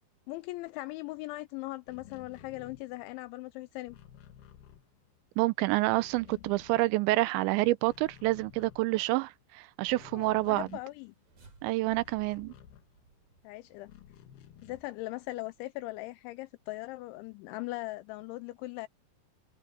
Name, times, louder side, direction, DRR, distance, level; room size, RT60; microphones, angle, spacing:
voice 1, 0.3-4.0 10.1-11.1 13.4-13.9 14.6-18.9, left 19 dB, 80° left, 2.9 m, -40 dB
sound 1, 1.8-5.4 5.7-7.4 7.7-13.3 13.8-15.1, left 10 dB, 65° left, 2.8 m, -54 dB
voice 2, 5.4-10.7 11.6-12.5, right 20 dB, 80° right, 2.8 m, -28 dB
sound 2, 10.8-16.1, right 4 dB, 40° right, 7.0 m, -63 dB
omnidirectional pair, 5.5 m